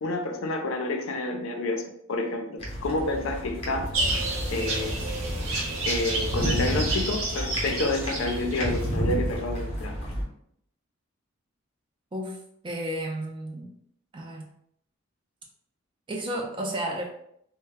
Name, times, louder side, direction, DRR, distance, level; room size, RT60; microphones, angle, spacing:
voice 1, 0.0-3.9 4.5-5.0 5.9-10.0, left 2 dB, 70° left, 4 dB, 0.4 m, -29 dB
sound 1, 2.6-10.2, equal, 30° left, 0.7 m, -32 dB
sound 2, 3.9-8.9, right 2 dB, 75° right, 0.6 m, -30 dB
voice 2, 12.6-13.7 14.1-14.5 16.1-17.2, right 1 dB, 25° right, 1 dB, 0.3 m, -32 dB
2.1 x 2.0 x 3.3 m, 0.71 s
head